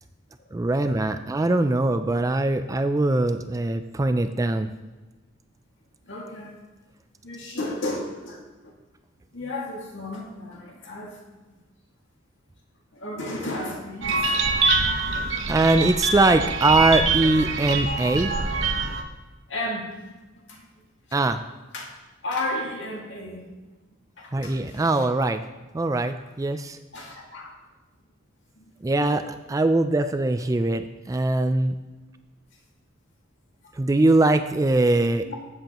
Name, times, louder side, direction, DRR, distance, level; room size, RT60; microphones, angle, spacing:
voice 1, 0.5-4.7 14.9-15.1 15.5-18.3 21.1-21.4 24.3-25.4 25.7-26.8 28.8-31.7 33.7-35.3, right 2 dB, 15° right, 9 dB, 0.3 m, -22 dB
voice 2, 6.1-6.5 7.2-8.4 9.3-11.2 12.9-14.3 19.5-20.1 20.5-20.6 21.7-21.9 22.2-23.4 24.2-24.8 26.9-27.5 28.6-29.2 35.2-35.3, left 1 dB, 65° left, -1 dB, 2.1 m, -33 dB
sound 1, 14.0-19.0, right 3 dB, 65° right, 0.9 m, -24 dB
14.0 x 7.9 x 3.0 m, 1.2 s
head